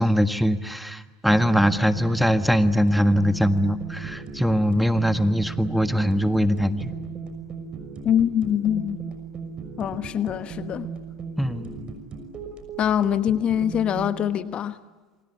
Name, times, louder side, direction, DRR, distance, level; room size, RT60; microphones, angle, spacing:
voice 1, 0.0-6.9 11.4-11.8, equal, ahead, 1.6 m, -22 dB
sound 1, 1.3-14.1, right 5 dB, 35° right, 6.1 m, -37 dB
voice 2, 8.0-9.0 9.8-10.9 12.8-14.8, left 9 dB, 40° left, 1.2 m, -23 dB
29.0 x 24.5 x 8.5 m
hypercardioid pair, 95°, 3 cm